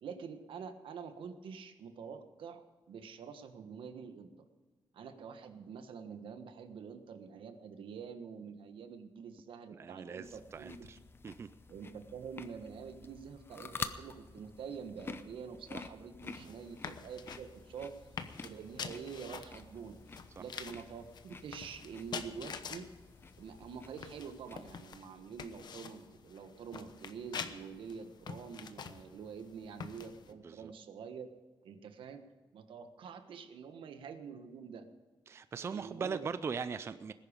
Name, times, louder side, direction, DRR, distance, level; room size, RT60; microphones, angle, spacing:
voice 1, 0.0-4.3 4.9-10.9 11.7-17.9 18.4-20.0 20.4-22.9 23.4-31.3 31.6-32.2 32.5-34.8 35.7-36.3, right 6 dB, 80° right, 8 dB, 1.3 m, -46 dB
voice 2, 9.8-11.0 11.2-11.5 16.4-16.5 20.4-20.5 30.4-30.7 35.3-37.1, right 5 dB, 30° right, 13 dB, 0.4 m, -40 dB
sound 1, 10.2-24.9, left 4 dB, 25° left, 0.7 m, -49 dB
sound 2, 16.2-30.3, left 6 dB, 55° left, 1.0 m, -47 dB
19.5 x 10.5 x 5.2 m, 1.4 s
wide cardioid pair, 160°, 9 cm